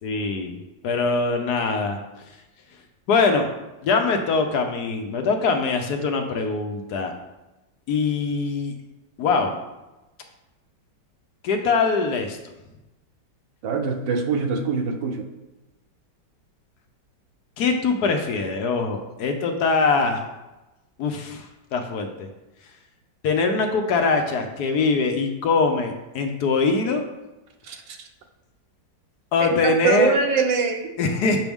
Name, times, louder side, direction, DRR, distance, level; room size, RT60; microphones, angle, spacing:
voice 1, 0.0-0.6 0.8-2.0 3.1-3.5 3.8-7.1 7.9-8.7 9.2-9.5 11.4-12.4 17.6-20.2 21.0-22.1 23.2-27.0 29.3-30.1 31.0-31.4, left 4 dB, 65° left, 4 dB, 1.2 m, -22 dB
voice 2, 13.6-15.2 27.7-27.8 29.6-30.9, right 5 dB, 85° right, 5 dB, 1.5 m, -23 dB
6.0 x 6.0 x 3.5 m, 1.0 s
omnidirectional pair, 1.9 m